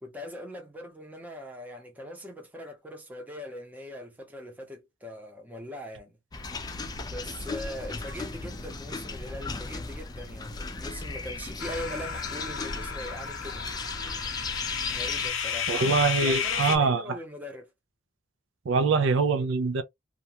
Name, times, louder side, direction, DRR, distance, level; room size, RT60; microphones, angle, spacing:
voice 1, 0.0-6.2 7.0-13.7 14.9-17.7, left 1 dB, 10° right, 0.7 m, -41 dB
sound 1, 6.3-15.3, left 3 dB, 20° left, 0.3 m, -36 dB
sound 2, 11.6-16.8, left 7 dB, 80° left, 0.6 m, -32 dB
voice 2, 15.7-17.2 18.7-19.8, right 4 dB, 75° right, 0.4 m, -24 dB
2.4 x 2.2 x 2.8 m
head